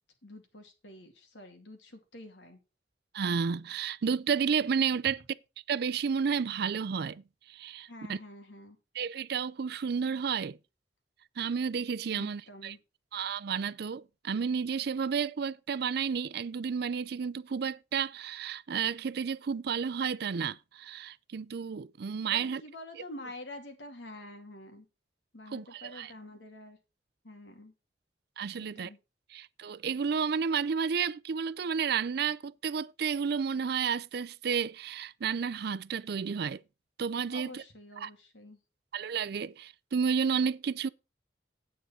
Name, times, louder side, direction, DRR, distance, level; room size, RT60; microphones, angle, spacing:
voice 1, 0.2-2.6 7.9-8.8 12.1-12.8 22.3-24.8 25.3-26.8 27.2-27.7 28.6-29.0 37.3-38.6, left 1 dB, 85° left, 2.6 m, -47 dB
voice 2, 3.1-5.2 5.7-8.2 8.9-10.6 11.4-12.8 13.1-22.6 23.0-23.1 25.5-26.1 28.4-28.9 29.3-36.6 37.0-37.6 38.0-38.1 38.9-40.9, right 6 dB, 60° right, 0.4 m, -31 dB
9.2 x 8.6 x 4.2 m
head